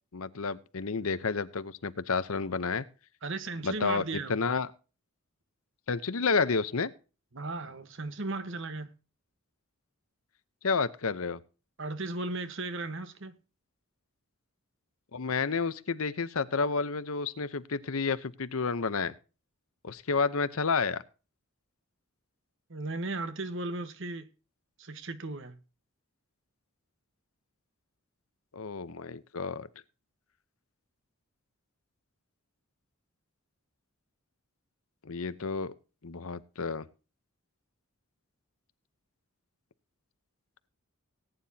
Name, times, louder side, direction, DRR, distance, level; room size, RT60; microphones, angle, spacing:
voice 1, 0.1-2.9 3.6-4.7 5.9-6.9 10.6-11.4 15.1-19.1 19.8-21.0 28.5-29.7 35.0-35.7 36.0-36.9, left 4 dB, 75° left, 0.8 m, -30 dB
voice 2, 3.2-4.5 7.3-8.9 11.8-13.3 22.7-24.3 24.8-25.6, right 2 dB, 60° right, 1.2 m, -36 dB
18.5 x 9.6 x 2.8 m
head